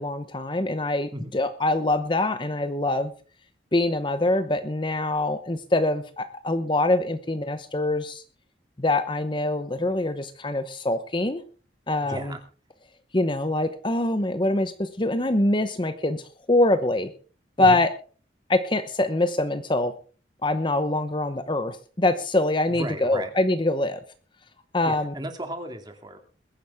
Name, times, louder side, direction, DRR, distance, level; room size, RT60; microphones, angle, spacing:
voice 1, 0.0-3.1 3.7-8.2 8.8-11.4 11.9-12.3 13.1-16.2 16.5-17.1 17.6-17.9 18.5-19.9 20.4-24.0 24.7-25.1, left 2 dB, 25° left, 10 dB, 0.9 m, -24 dB
voice 2, 12.0-12.4 17.6-17.8 22.8-23.3 24.8-26.2, right 1 dB, 25° right, 5 dB, 2.4 m, -35 dB
21.5 x 10.0 x 3.5 m, 0.38 s
head